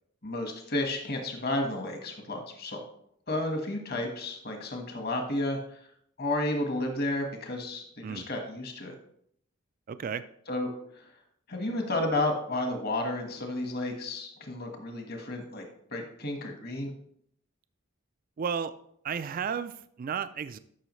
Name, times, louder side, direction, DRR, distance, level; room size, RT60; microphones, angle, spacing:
voice 1, 0.2-2.8 3.3-5.6 6.2-8.9 10.5-10.7 11.5-15.6 15.9-16.9, left 1 dB, 45° left, 3 dB, 1.4 m, -32 dB
voice 2, 9.9-10.2 18.4-18.7 19.0-20.6, right 7 dB, 40° right, 13 dB, 0.3 m, -33 dB
13.0 x 5.6 x 3.1 m, 0.69 s
head